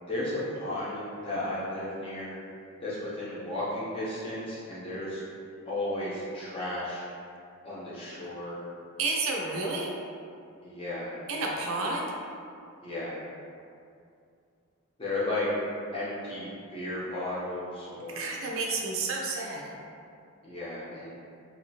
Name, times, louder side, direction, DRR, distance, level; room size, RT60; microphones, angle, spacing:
voice 1, 0.0-2.4 2.8-5.2 5.7-7.0 7.6-8.6 10.6-11.1 12.8-13.1 15.0-15.5 15.9-18.4 20.4-21.1, left 1 dB, 25° left, -9 dB, 0.8 m, -34 dB
voice 2, 9.0-9.9 11.3-12.1 18.1-19.7, right 3 dB, 65° right, -1 dB, 0.5 m, -30 dB
3.1 x 2.7 x 2.8 m, 2.4 s
head